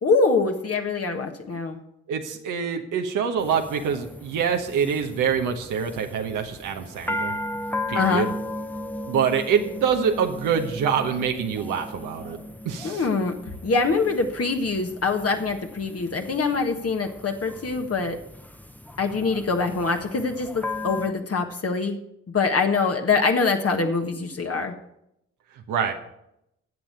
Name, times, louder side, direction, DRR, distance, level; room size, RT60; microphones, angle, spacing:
voice 1, 0.0-1.8 7.9-8.3 12.8-13.3 13.6-18.2 19.0-22.0 22.3-24.7, left 4 dB, 50° left, 3 dB, 1.5 m, -24 dB
voice 2, 2.1-7.3 7.9-8.3 9.1-12.4 12.6-13.0 25.7-25.9, right 7 dB, 80° right, 3 dB, 1.1 m, -25 dB
sound 1, 3.4-21.1, left 1 dB, 5° left, 0.9 m, -36 dB
11.0 x 7.3 x 6.8 m, 0.80 s
supercardioid pair, 45°, 31 cm